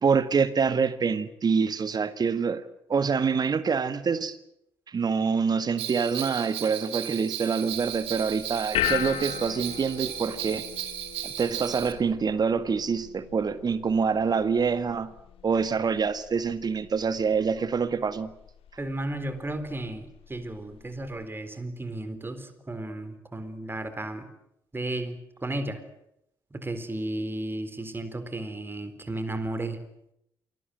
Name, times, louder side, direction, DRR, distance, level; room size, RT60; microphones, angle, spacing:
voice 1, 0.0-2.6 2.9-4.4 4.9-10.6 11.2-15.1 15.4-18.3, right 5 dB, 35° right, 14 dB, 1.7 m, -26 dB
Bell, 5.8-11.9, right 12 dB, 60° right, 2.4 m, -35 dB
sound 1, 7.7-21.3, left 12 dB, 55° left, 1.9 m, -38 dB
voice 2, 18.8-24.3 24.7-25.8 26.5-29.8, right 1 dB, 20° right, 10 dB, 4.0 m, -34 dB
28.5 x 20.5 x 7.8 m, 0.78 s
figure-of-eight pair, 40°, 11 cm